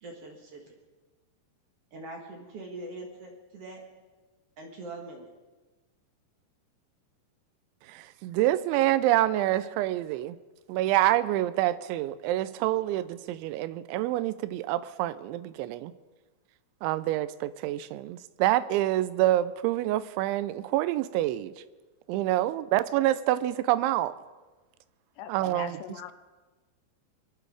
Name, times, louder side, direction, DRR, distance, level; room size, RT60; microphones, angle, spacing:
voice 1, 0.0-0.8 1.9-3.8 4.6-5.3, right 2 dB, 55° right, 1 dB, 1.6 m, -42 dB
voice 2, 7.9-10.4 10.7-15.9 16.8-21.5 22.1-24.1 25.3-25.8, right 14 dB, 85° right, 15 dB, 3.0 m, -27 dB
voice 3, 25.2-26.1, left 11 dB, 80° left, 10 dB, 2.5 m, -41 dB
23.5 x 11.0 x 4.9 m, 1.3 s
omnidirectional pair, 5.3 m